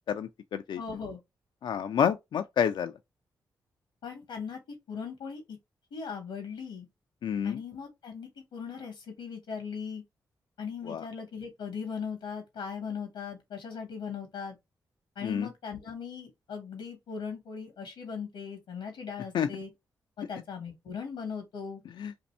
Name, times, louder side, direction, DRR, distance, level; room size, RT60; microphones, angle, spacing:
voice 1, 0.1-0.8 1.6-2.9 7.2-7.6 10.9-11.0 15.2-15.5 19.3-19.5 22.0-22.1, left 8 dB, 70° left, 0.4 m, -28 dB
voice 2, 0.8-1.2 4.0-4.6 4.9-5.6 5.9-6.9 7.4-10.0 10.6-14.6 15.1-19.7 20.2-21.8, left 6 dB, 85° left, 1.0 m, -39 dB
2.7 x 2.6 x 4.1 m
supercardioid pair, 55°, 8 cm